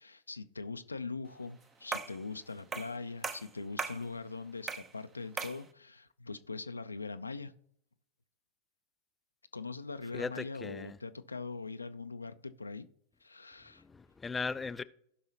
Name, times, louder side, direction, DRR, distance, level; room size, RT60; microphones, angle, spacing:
voice 1, 0.0-7.5 9.5-12.9 13.2-13.8, left 4 dB, 80° left, 0.5 m, -42 dB
sound 1, 1.9-2.2 2.7-3.0 3.2-4.0 4.7-4.9 5.4-5.6, right 5 dB, 20° right, 0.7 m, -38 dB
voice 2, 10.1-11.0 13.9-14.8, left 4 dB, 15° left, 0.3 m, -37 dB
16.5 x 5.6 x 2.9 m
figure-of-eight pair, 90°, 0 cm